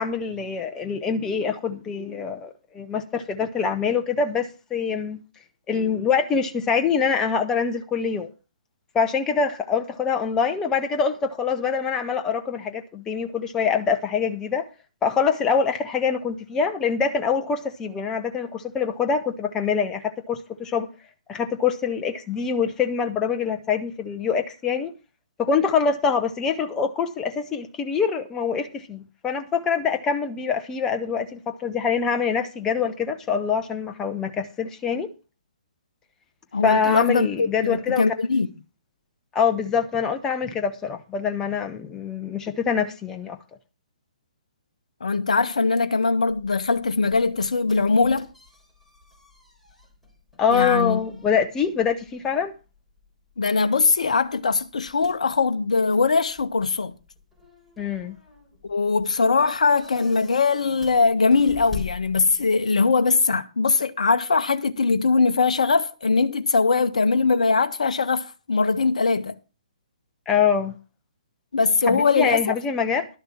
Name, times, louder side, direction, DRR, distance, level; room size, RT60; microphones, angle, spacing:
voice 1, 0.0-5.2 5.7-8.3 8.9-14.7 15.0-20.9 21.3-24.9 25.4-35.1 36.6-38.0 39.3-43.4 50.4-52.5 57.8-58.1 70.3-70.8 71.9-73.1, left 6 dB, 15° left, 0.7 m, -24 dB
voice 2, 36.5-38.5 45.0-48.3 50.5-51.0 53.4-56.9 58.7-69.3 71.5-72.6, left 4 dB, 65° left, 0.7 m, -21 dB
sound 1, 46.3-62.7, left 5 dB, ahead, 3.8 m, -45 dB
11.5 x 6.9 x 5.8 m
figure-of-eight pair, 130°, 4 cm